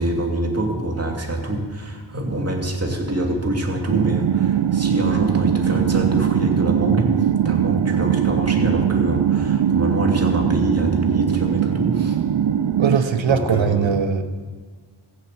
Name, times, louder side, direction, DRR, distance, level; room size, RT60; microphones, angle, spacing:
voice 1, 0.0-12.2 12.9-14.0, right 1 dB, 30° right, 1 dB, 2.9 m, -25 dB
sound 1, 3.9-13.0, right 9 dB, 60° right, 0.6 m, -20 dB
voice 2, 12.8-14.2, right 7 dB, 75° right, 9 dB, 1.1 m, -20 dB
15.0 x 7.7 x 8.4 m, 1.5 s
cardioid pair, 65°, 46 cm